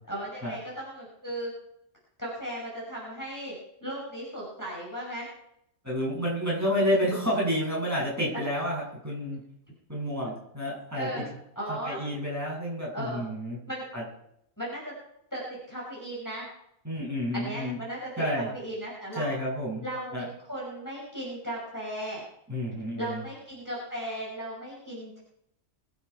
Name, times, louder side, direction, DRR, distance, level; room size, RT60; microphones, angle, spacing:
voice 1, 0.1-1.5 2.2-3.5 3.8-5.3 10.9-11.2 11.6-12.0 12.9-13.3 13.7-13.8 14.6-14.9 15.3-16.4 17.3-19.3 19.8-22.2 23.0-25.2, right 1 dB, 15° left, -5 dB, 6.0 m, -36 dB
voice 2, 5.8-9.4 9.9-11.2 11.7-13.6 13.9-14.0 16.8-17.8 18.2-18.5 19.1-19.9 20.1-20.3 22.5-23.2, equal, 10° right, -6 dB, 7.8 m, -30 dB
24.0 x 9.2 x 4.8 m, 0.74 s
omnidirectional pair, 1.3 m